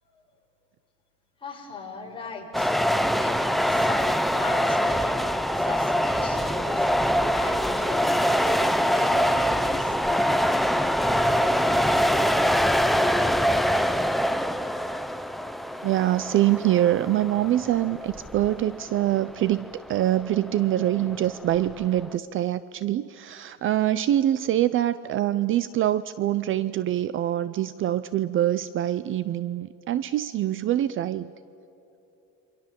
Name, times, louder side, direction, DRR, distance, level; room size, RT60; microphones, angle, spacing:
voice 1, 1.4-2.8 3.2-6.9 7.3-8.6 8.9-10.2, left 4 dB, 15° left, -1 dB, 5.1 m, -39 dB
sound 1, 2.5-22.1, equal, ahead, 0.6 m, -24 dB
voice 2, 15.8-31.3, right 13 dB, 40° right, 16 dB, 0.6 m, -24 dB
28.0 x 25.0 x 7.5 m, 2.9 s
cardioid pair, 145°, 31 cm